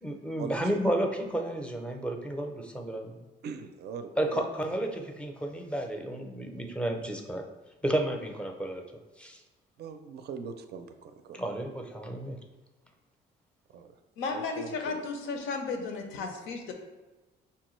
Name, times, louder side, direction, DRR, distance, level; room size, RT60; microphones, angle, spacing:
voice 1, 0.0-3.3 4.2-7.5 7.8-8.8 9.2-9.4 11.3-12.4, right 1 dB, 5° left, 3 dB, 0.5 m, -32 dB
voice 2, 3.4-4.4 9.8-11.4 13.7-13.9 14.3-15.0, right 6 dB, 55° right, 8 dB, 0.4 m, -41 dB
voice 3, 14.2-16.7, left 4 dB, 90° left, 4 dB, 0.6 m, -34 dB
5.5 x 2.2 x 3.1 m, 1.2 s
cardioid pair, 90°, 20 cm